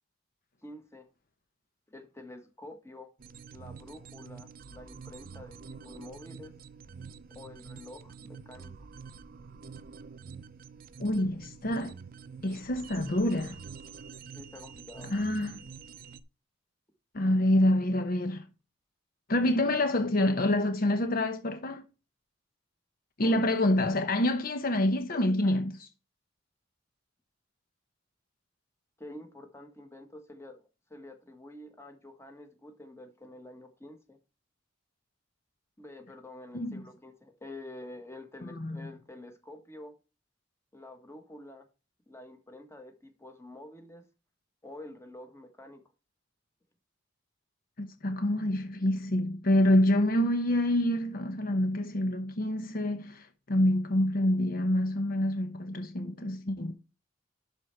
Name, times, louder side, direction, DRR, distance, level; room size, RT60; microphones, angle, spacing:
voice 1, 0.6-1.1 1.9-3.1 3.5-6.5 7.3-8.9 14.3-15.1 23.2-23.4 25.1-25.6 29.0-34.2 35.8-39.9 40.7-41.7 42.1-44.0 44.6-45.8, left 1 dB, 15° left, 1.5 m, -48 dB
sound 1, 3.2-16.2, right 5 dB, 50° right, 0.5 m, -47 dB
voice 2, 11.0-11.9 12.4-13.6 15.1-15.6 17.1-18.5 19.3-21.8 23.2-25.9 36.5-36.8 38.4-38.8 47.8-56.7, left 1 dB, 50° left, 0.8 m, -27 dB
11.5 x 4.5 x 4.6 m
head